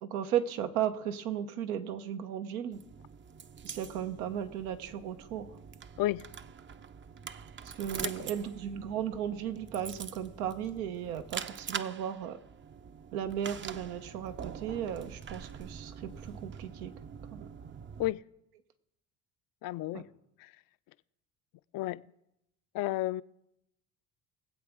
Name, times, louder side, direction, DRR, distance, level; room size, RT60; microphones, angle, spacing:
voice 1, 0.0-2.8 3.6-5.5 7.8-12.4 13.1-16.9 17.3-17.5 19.9-20.0, right 9 dB, 90° right, 1.0 m, -35 dB
sound 1, 2.7-18.1, right 7 dB, 30° right, 0.5 m, -44 dB
voice 2, 19.6-20.1 20.4-20.5 21.7-22.0 22.7-23.2, left 16 dB, 50° left, 0.5 m, -32 dB
22.0 x 8.0 x 3.6 m
supercardioid pair, 70°, 42 cm